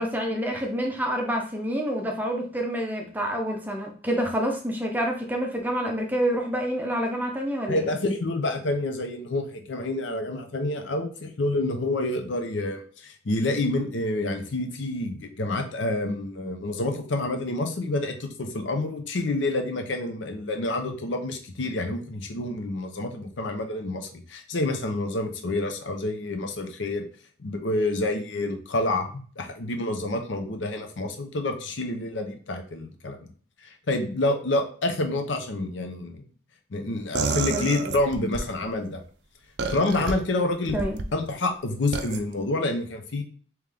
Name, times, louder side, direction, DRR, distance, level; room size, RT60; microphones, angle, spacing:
voice 1, 0.0-7.9 37.5-37.7 40.7-41.0, equal, 10° right, 1 dB, 0.6 m, -28 dB
voice 2, 7.7-27.0 27.4-33.3 33.9-36.2 36.7-39.0 39.7-40.8 41.1-43.2, left 2 dB, 75° left, 5 dB, 0.7 m, -28 dB
sound 1, 37.1-38.5 39.6-40.1 40.7-41.1 41.9-42.2, right 4 dB, 60° right, 0.4 m, -29 dB
3.6 x 3.1 x 3.4 m, 0.44 s
head